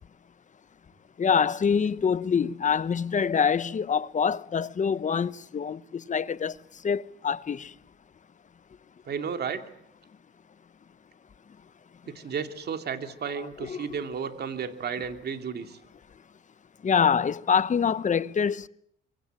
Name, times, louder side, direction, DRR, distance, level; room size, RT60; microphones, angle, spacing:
voice 1, 1.2-5.8 6.1-6.5 6.8-7.7 13.7-13.9 16.8-18.7, left 6 dB, 40° left, 1.0 m, -25 dB
voice 2, 9.1-9.6 12.1-15.8, right 6 dB, 55° right, 2.7 m, -33 dB
26.0 x 23.5 x 8.9 m
cardioid pair, 90°, 20 cm